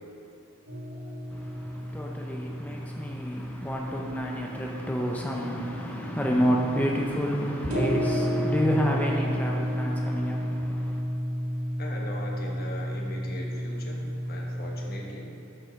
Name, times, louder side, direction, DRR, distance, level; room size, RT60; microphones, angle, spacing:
sound 1, 0.7-15.0, equal, 85° right, 1.6 m, -32 dB
voice 1, 1.3-11.0, equal, 10° left, 0.5 m, -29 dB
Organ, 3.8-10.3, left 1 dB, 45° right, 0.8 m, -44 dB
voice 2, 11.8-15.3, left 1 dB, 45° left, 1.3 m, -40 dB
8.6 x 5.4 x 6.3 m
head